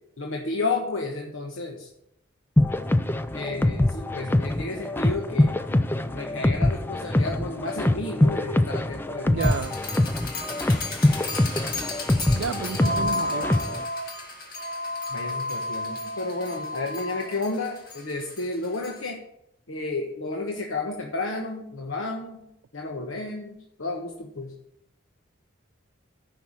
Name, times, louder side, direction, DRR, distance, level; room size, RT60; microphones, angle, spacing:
voice 1, 0.2-1.9 3.3-9.6 15.1-19.2 19.7-24.5, left 3 dB, 85° left, 1.2 m, -32 dB
sound 1, 2.6-13.8, left 1 dB, 10° left, 0.4 m, -24 dB
voice 2, 9.3-9.8 12.3-13.5, right 6 dB, 75° right, 0.4 m, -31 dB
sound 2, 9.4-19.0, left 2 dB, 45° left, 2.0 m, -32 dB
10.5 x 5.8 x 7.2 m
head